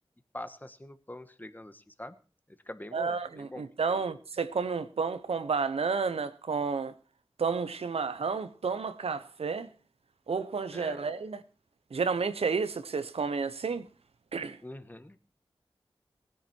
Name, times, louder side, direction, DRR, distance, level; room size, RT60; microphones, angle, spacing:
voice 1, 0.3-2.2 2.6-3.6 3.9-4.0 10.7-11.0 14.6-15.2, left 1 dB, 20° left, 1.4 m, -44 dB
voice 2, 2.9-6.9 7.4-9.7 10.3-11.4 11.9-13.9 14.3-14.6, right 5 dB, 90° right, 1.0 m, -31 dB
18.5 x 10.0 x 4.6 m
wide cardioid pair, 60°, 10 cm